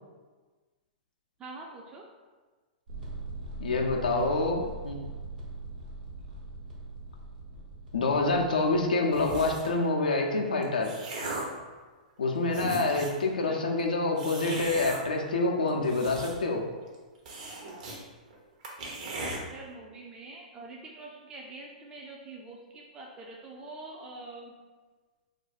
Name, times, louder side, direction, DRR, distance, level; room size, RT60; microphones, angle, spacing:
voice 1, 1.4-2.1 13.4-13.6 19.2-24.5, right 2 dB, 20° right, -1 dB, 0.4 m, -45 dB
sound 1, 2.9-8.8, right 2 dB, 80° right, 1.1 m, -41 dB
voice 2, 3.6-5.0 7.9-10.9 12.2-16.6, left 3 dB, 80° left, 1 dB, 0.5 m, -27 dB
sound 2, 9.1-9.8 10.5-11.6 12.2-12.3 12.5-13.2 14.2-15.0 15.7-16.6 16.9-17.0 17.3-18.0 18.3-18.4 18.6-19.4, right 2 dB, 55° right, 0.8 m, -37 dB
2.5 x 2.2 x 4.0 m, 1.4 s
hypercardioid pair, 115°, 4 cm